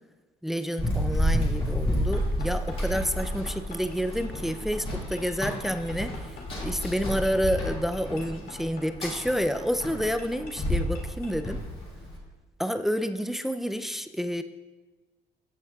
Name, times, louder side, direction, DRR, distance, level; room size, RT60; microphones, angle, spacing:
voice 1, 0.4-11.6 12.6-14.4, equal, ahead, 9 dB, 0.3 m, -29 dB
Run, 0.8-12.2, equal, 30° left, 2.1 m, -30 dB
sound 1, 2.1-11.4, left 3 dB, 65° left, 2.3 m, -46 dB
13.5 x 7.1 x 2.3 m, 1.2 s
cardioid pair, 110°, 17 cm